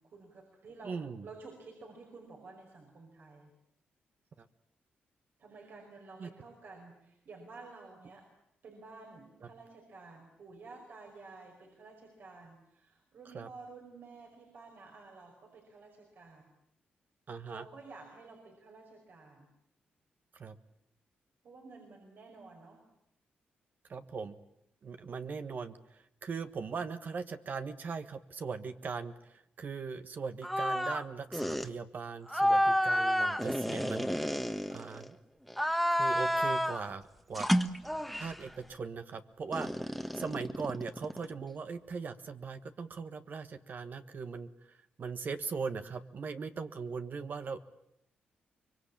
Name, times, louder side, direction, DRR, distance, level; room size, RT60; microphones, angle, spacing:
voice 1, 0.0-3.5 5.4-8.3 8.6-16.4 17.5-19.5 21.4-22.9, right 3 dB, 70° right, 0 dB, 5.3 m, -52 dB
voice 2, 0.8-1.3 4.4-4.5 6.2-6.3 13.3-13.5 17.3-17.7 20.3-20.6 23.9-24.4 24.8-25.8 26.2-34.1 34.7-35.2 35.9-37.0 37.3-37.5 38.2-44.5 45.0-47.6, right 5 dB, 55° right, 9 dB, 1.4 m, -39 dB
sound 1, 30.4-31.0 31.3-31.7 32.3-35.1 35.5-36.9 37.3-38.4 39.5-41.3, equal, ahead, 1.5 m, -30 dB
24.0 x 22.5 x 8.6 m, 0.79 s
cardioid pair, 75°, 4 cm